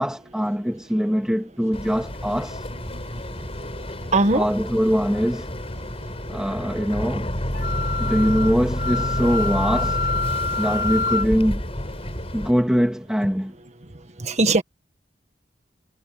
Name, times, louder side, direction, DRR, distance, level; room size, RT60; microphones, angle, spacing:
voice 1, 0.0-2.6 4.3-5.5 6.3-7.3 8.0-10.1 10.6-11.6 12.3-13.5, equal, 5° right, 2.6 m, -22 dB
Boat Water vehicle, 1.7-12.5, equal, 35° left, 7.1 m, -29 dB
voice 2, 2.9-4.5 9.2-9.3 14.2-14.6, right 2 dB, 40° right, 1.8 m, -23 dB
Wind instrument woodwind instrument, 7.5-11.3, left 3 dB, 55° left, 5.4 m, -27 dB
head